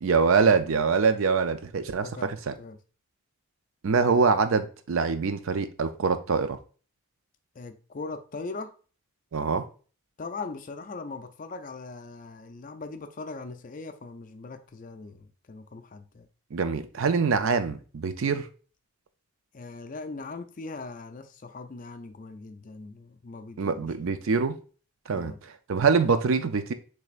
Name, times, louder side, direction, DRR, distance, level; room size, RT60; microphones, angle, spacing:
voice 1, 0.0-2.5 3.8-6.6 9.3-9.6 16.5-18.5 23.6-24.5 25.1-25.3 25.7-26.7, right 5 dB, 60° right, 0.5 m, -24 dB
voice 2, 2.0-2.8 7.5-8.7 10.2-16.3 19.5-23.9 25.1-25.4, left 3 dB, 35° left, 0.4 m, -40 dB
6.3 x 3.4 x 2.4 m
head